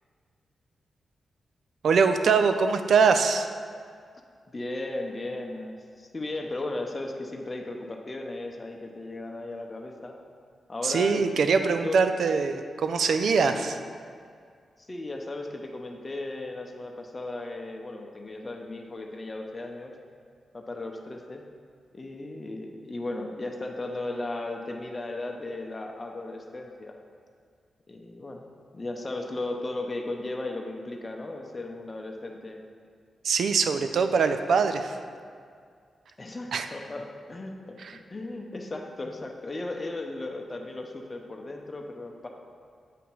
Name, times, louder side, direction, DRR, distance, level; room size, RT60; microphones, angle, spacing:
voice 1, 1.8-3.5 10.8-13.7 33.2-35.0 36.5-36.7 37.8-37.9, right 5 dB, 75° right, 8 dB, 0.4 m, -23 dB
voice 2, 4.5-10.2 10.7-12.0 13.6-13.7 14.8-19.9 20.5-21.4 21.9-26.9 27.9-28.5 28.7-32.6 36.2-37.5 38.1-42.3, left 2 dB, 35° left, 2 dB, 0.7 m, -36 dB
7.4 x 2.8 x 5.4 m, 2.1 s
cardioid pair, 55°, 0 cm